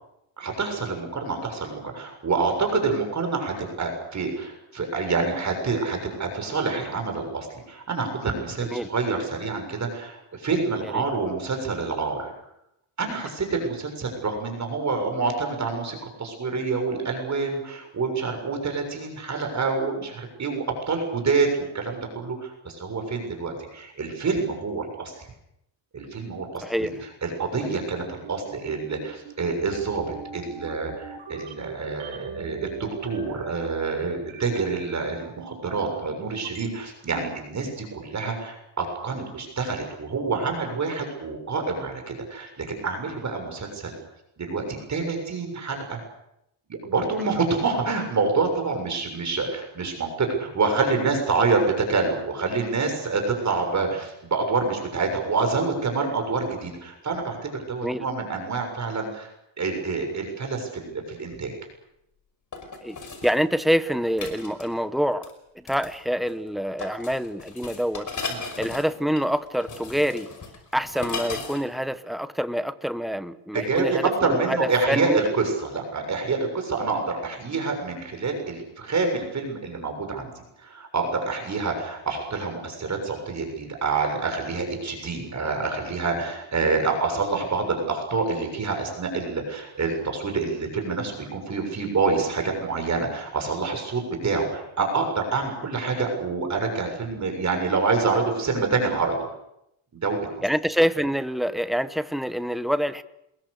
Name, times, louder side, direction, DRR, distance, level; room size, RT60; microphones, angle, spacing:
voice 1, 0.4-12.3 13.0-25.3 25.9-26.9 27.2-44.0 44.4-46.0 46.7-61.5 68.3-68.4 73.5-99.2 99.9-100.5, right 4 dB, 35° right, 4 dB, 7.0 m, -27 dB
voice 2, 26.6-26.9 57.8-58.1 62.8-63.0 63.2-65.3 65.5-68.1 68.6-70.3 70.7-75.2 100.4-103.0, equal, ahead, 12 dB, 1.1 m, -26 dB
sound 1, 28.2-36.7, right 6 dB, 70° right, 6.3 m, -40 dB
sound 2, 61.2-61.3 62.5-63.4 64.2-64.7 65.2-65.3 65.7-66.0 66.2-66.5 66.8-71.6 71.9-72.0, left 4 dB, 40° left, 5.6 m, -36 dB
29.0 x 22.0 x 6.7 m, 0.82 s
cardioid pair, 125°, 48 cm